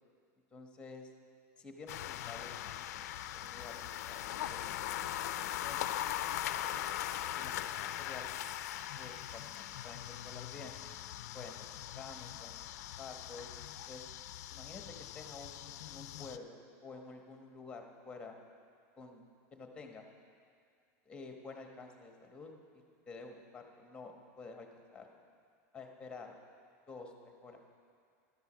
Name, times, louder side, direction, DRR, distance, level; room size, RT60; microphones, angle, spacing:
voice 1, 0.5-1.1 1.6-5.0 5.3-6.0 7.4-8.3 8.9-10.8 11.3-12.6 13.0-14.0 14.5-18.4 19.0-20.1 21.0-22.5 23.1-25.1 25.7-26.3 26.9-27.6, left 4 dB, 10° left, 3 dB, 1.1 m, -50 dB
sound 1, 1.9-16.4, left 12 dB, 80° left, 0.4 m, -40 dB
12.0 x 8.1 x 6.2 m, 2.3 s
supercardioid pair, 150°, 9 cm